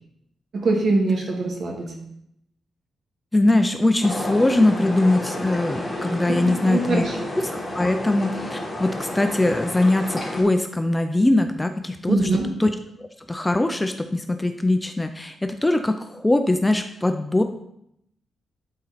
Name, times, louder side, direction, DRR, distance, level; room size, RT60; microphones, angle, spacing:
voice 1, 0.5-1.9 6.3-7.3 12.1-12.5, right 3 dB, 55° right, 0 dB, 1.8 m, -23 dB
voice 2, 3.3-7.1 7.4-12.3 12.6-12.7 13.0-17.4, left 2 dB, 10° left, 7 dB, 0.4 m, -21 dB
sound 1, 4.0-10.4, left 1 dB, 10° right, 3.0 m, -31 dB
11.5 x 4.2 x 4.0 m, 0.77 s
wide cardioid pair, 155°, 0 cm